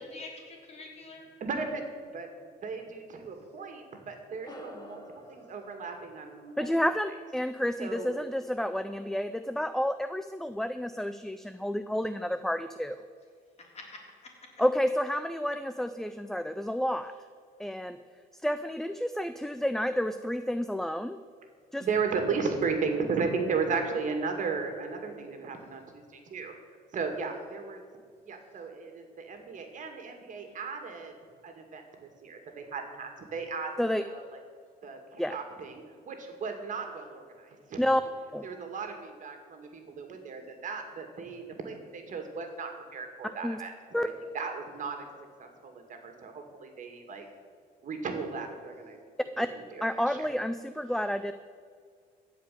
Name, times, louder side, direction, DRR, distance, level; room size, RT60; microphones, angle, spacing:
voice 1, 0.0-1.3 13.6-14.3, left 3 dB, 40° left, 0 dB, 3.5 m, -46 dB
voice 2, 1.4-6.7 7.8-8.2 21.8-26.5 26.9-27.8 28.3-31.1 31.4-34.4 34.8-37.8 38.4-45.1 45.4-47.2 47.8-49.0 49.5-50.3, right 5 dB, 50° right, 4 dB, 2.2 m, -35 dB
sound 1, 4.4-9.2, left 1 dB, 25° left, 1.8 m, -52 dB
voice 3, 6.6-13.0 14.6-17.1 17.6-18.0 18.3-21.2 21.7-21.9 33.8-34.0 35.2-35.4 37.8-38.0 38.3-38.5 43.4-43.6 43.9-44.1 49.4-49.5 49.8-51.3, equal, ahead, 11 dB, 0.4 m, -30 dB
15.5 x 5.2 x 9.1 m, 2.1 s
cardioid pair, 110°, 17 cm